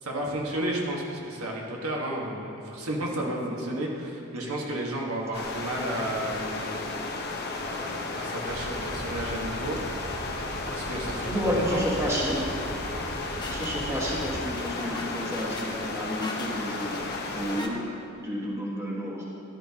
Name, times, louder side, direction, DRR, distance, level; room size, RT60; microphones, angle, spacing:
voice 1, 0.0-6.8 7.4-9.8 10.6-11.8, right 1 dB, 80° right, -2 dB, 1.5 m, -32 dB
voice 2, 3.1-3.7 11.2-12.4 13.5-17.0 17.3-17.8 18.2-19.2, equal, 15° right, -4 dB, 1.5 m, -30 dB
sound 1, 5.3-17.6, left 3 dB, 50° left, 1.0 m, -34 dB
sound 2, 8.4-14.5, right 2 dB, 30° right, 0.5 m, -40 dB
sound 3, 12.7-17.7, left 2 dB, 20° left, 0.8 m, -42 dB
13.5 x 10.5 x 2.9 m, 2.7 s
head